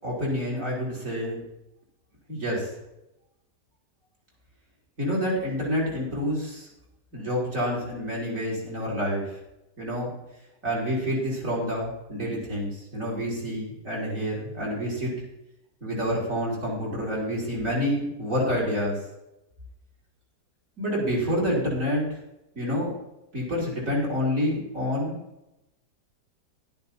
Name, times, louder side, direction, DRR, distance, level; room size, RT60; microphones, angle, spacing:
voice 1, 0.0-1.4 2.3-2.7 5.0-6.7 7.1-9.3 9.8-10.1 10.6-15.1 15.8-19.0 20.8-22.0 22.5-22.9 23.3-25.2, equal, 50° right, -4 dB, 4.3 m, -28 dB
11.5 x 10.5 x 4.3 m, 0.90 s
omnidirectional pair, 1.8 m